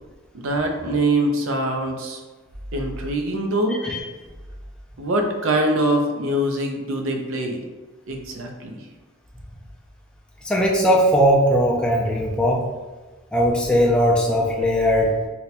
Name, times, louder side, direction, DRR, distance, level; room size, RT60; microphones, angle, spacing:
voice 1, 0.3-2.2 2.7-3.8 5.0-7.6 8.1-8.8, right 1 dB, 80° right, 3 dB, 0.5 m, -23 dB
voice 2, 3.7-4.1 10.4-12.6 13.3-15.1, equal, 5° left, -3 dB, 0.3 m, -19 dB
2.7 x 2.2 x 4.0 m, 1.3 s
head